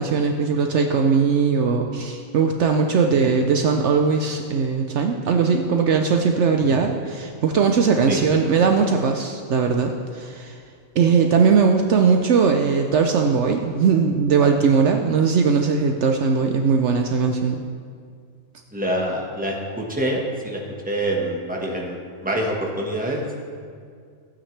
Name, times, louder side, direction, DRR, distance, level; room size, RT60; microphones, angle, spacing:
voice 1, 0.0-10.6 11.0-17.6, right 5 dB, 65° right, 4 dB, 0.9 m, -19 dB
voice 2, 18.7-23.4, right 1 dB, 5° right, -1 dB, 1.3 m, -26 dB
15.0 x 8.8 x 3.3 m, 2.1 s
omnidirectional pair, 1.4 m